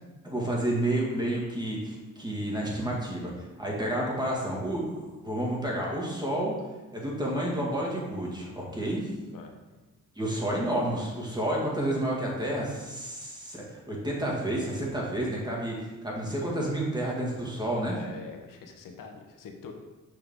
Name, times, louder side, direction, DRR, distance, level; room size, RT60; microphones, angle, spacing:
voice 1, 0.2-6.5 6.9-9.1 10.2-18.0, right 1 dB, 15° right, -3 dB, 1.9 m, -30 dB
voice 2, 17.8-19.7, left 5 dB, 80° left, 3 dB, 1.1 m, -44 dB
6.6 x 5.8 x 3.6 m, 1.2 s
cardioid pair, 110°, 33 cm